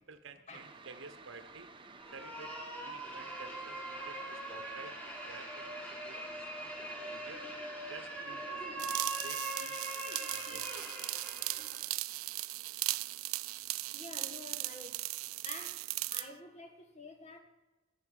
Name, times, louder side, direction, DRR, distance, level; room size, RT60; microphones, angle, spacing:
voice 1, 0.0-1.7 2.1-7.4 7.9-8.9 9.2-9.8 10.3-10.9, right 4 dB, 65° right, 1.1 m, -52 dB
sound 1, 0.5-9.0, right 3 dB, 25° right, 0.9 m, -54 dB
sound 2, 2.0-11.9, right 2 dB, 5° left, 2.3 m, -42 dB
sound 3, 8.8-16.3, right 19 dB, 85° right, 0.4 m, -38 dB
voice 2, 13.9-15.0 15.4-15.8 16.1-17.4, left 2 dB, 35° left, 1.6 m, -48 dB
11.0 x 9.2 x 9.3 m
head